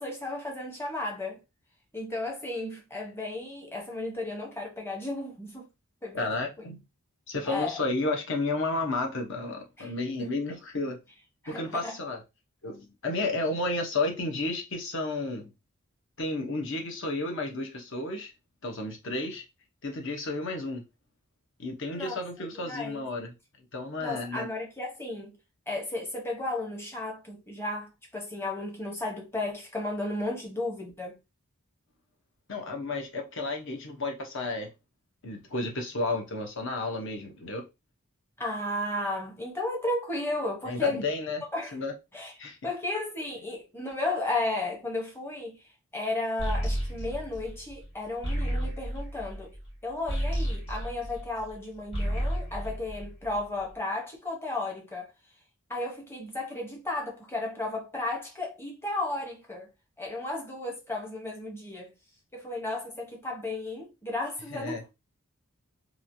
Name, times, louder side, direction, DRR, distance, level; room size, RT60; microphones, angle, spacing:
voice 1, 0.0-1.4 1.9-5.7 6.0-6.3 7.5-7.8 9.8-9.9 10.2-10.3 11.4-12.0 21.9-22.2 22.6-23.0 24.0-25.3 25.7-31.2 38.4-41.0 41.5-41.7 42.1-42.3 42.6-45.6 45.9-49.5 49.8-55.1 55.7-59.7 60.0-61.9 62.3-64.9, left 2 dB, 10° left, 0.8 m, -34 dB
voice 2, 6.1-6.8 7.3-11.0 11.5-12.2 12.6-15.5 16.2-18.3 18.6-19.4 19.8-20.8 21.6-23.3 23.7-24.5 32.5-34.7 35.2-37.7 40.7-41.4 41.7-41.9 42.4-42.6 64.5-64.8, left 2 dB, 55° left, 0.8 m, -32 dB
sound 1, 46.4-51.6 51.8-53.6, equal, 30° left, 1.4 m, -32 dB
3.0 x 2.4 x 2.6 m
head